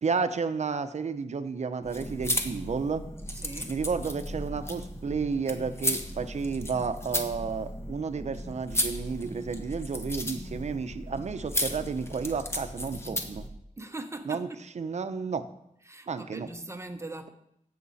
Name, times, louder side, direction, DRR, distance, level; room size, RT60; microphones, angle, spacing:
voice 1, 0.0-3.0 3.7-13.5 14.3-14.5 14.8-15.4 16.1-16.5, right 5 dB, 55° right, 10 dB, 0.8 m, -32 dB
sound 1, 1.8-13.5, left 1 dB, 20° left, 1.2 m, -35 dB
voice 2, 3.3-3.8 13.8-14.6 15.8-17.3, right 2 dB, 20° right, 7 dB, 0.8 m, -40 dB
16.5 x 6.8 x 4.2 m, 0.78 s
wide cardioid pair, 105°, 14 cm